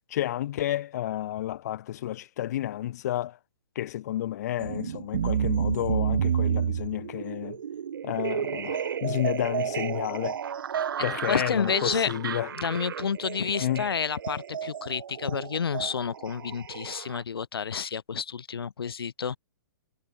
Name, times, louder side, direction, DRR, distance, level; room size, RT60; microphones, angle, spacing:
voice 1, 0.1-3.4 3.8-7.6 8.0-10.4 11.0-12.5 13.6-13.9, left 13 dB, 45° left, 3.3 m, -31 dB
sound 1, 4.6-17.2, right 8 dB, 65° right, 5.3 m, -31 dB
voice 2, 11.3-12.1 12.6-19.4, left 6 dB, 80° left, 4.1 m, -30 dB
hypercardioid pair, 160°, 12 cm